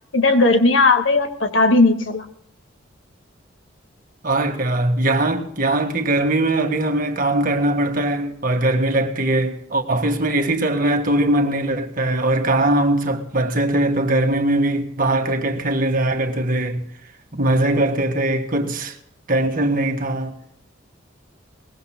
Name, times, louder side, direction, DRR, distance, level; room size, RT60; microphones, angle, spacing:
voice 1, 0.1-2.3, left 3 dB, 70° left, 1.7 m, -16 dB
voice 2, 4.2-16.8 17.3-19.0 19.3-20.4, right 1 dB, 45° right, 1.6 m, -21 dB
22.5 x 20.0 x 2.2 m
head